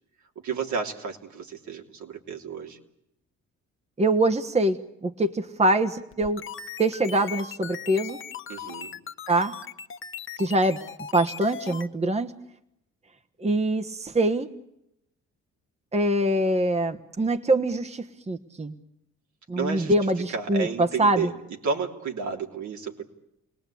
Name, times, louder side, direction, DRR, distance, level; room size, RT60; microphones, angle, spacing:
voice 1, 0.4-2.8 8.5-8.9 19.6-19.9 20.3-21.4 21.6-23.0, right 5 dB, 70° right, 2 dB, 3.2 m, -31 dB
voice 2, 4.0-6.4 6.8-8.2 9.3-9.5 10.4-10.8 11.1-12.3 13.4-14.5 15.9-18.7 19.5-21.3, right 1 dB, 20° right, 9 dB, 1.3 m, -24 dB
sound 1, 6.1-11.9, left 7 dB, 40° left, 1.4 m, -39 dB
29.0 x 19.0 x 8.5 m, 0.83 s
cardioid pair, 90°, 30 cm